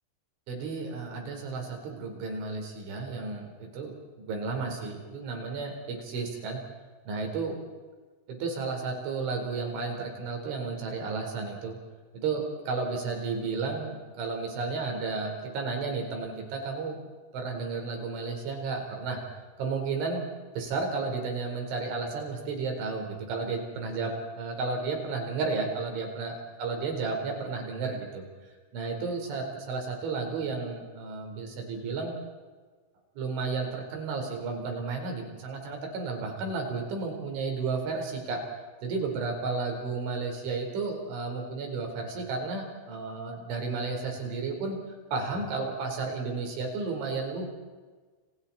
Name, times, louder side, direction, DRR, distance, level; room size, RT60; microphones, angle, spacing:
voice 1, 0.5-3.9 4.3-6.6 7.1-7.6 8.3-11.8 12.2-17.0 17.3-19.2 19.6-20.2 20.5-28.2 28.7-32.1 33.2-38.4 38.8-44.8 45.1-47.5, right 4 dB, 70° right, 2 dB, 6.8 m, -32 dB
30.0 x 27.0 x 4.4 m, 1.4 s
omnidirectional pair, 5.8 m